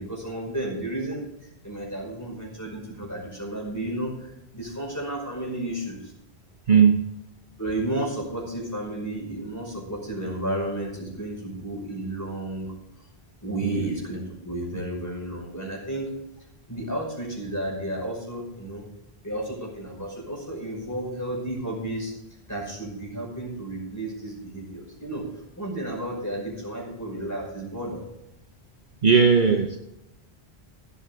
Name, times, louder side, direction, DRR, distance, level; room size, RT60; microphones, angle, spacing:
voice 1, 0.0-4.1 4.5-6.1 7.6-12.7 13.4-16.1 16.7-18.8 19.2-22.1 22.5-25.3 25.6-28.1, right 1 dB, 15° left, -2 dB, 5.6 m, -32 dB
voice 2, 6.7-7.0 13.6-13.9 29.0-29.8, right 6 dB, 50° right, 4 dB, 1.0 m, -18 dB
17.5 x 8.4 x 3.6 m, 0.87 s
omnidirectional pair, 1.1 m